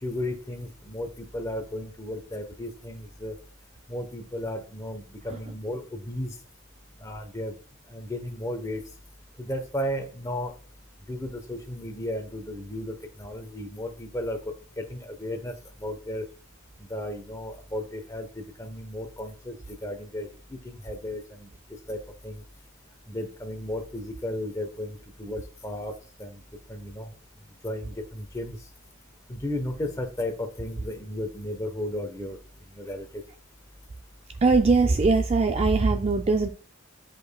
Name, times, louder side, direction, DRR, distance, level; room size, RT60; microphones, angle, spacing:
voice 1, 0.0-3.4 3.9-6.4 7.0-7.5 7.9-8.9 9.4-10.5 11.1-15.5 15.8-16.3 16.8-21.5 21.9-22.4 23.1-26.4 26.7-27.1 27.6-28.6 29.3-32.4 32.7-33.2, left 1 dB, 15° left, 6 dB, 0.8 m, -34 dB
voice 2, 34.4-36.5, right 3 dB, 30° right, 6 dB, 0.3 m, -21 dB
10.0 x 5.2 x 2.2 m, 0.41 s
head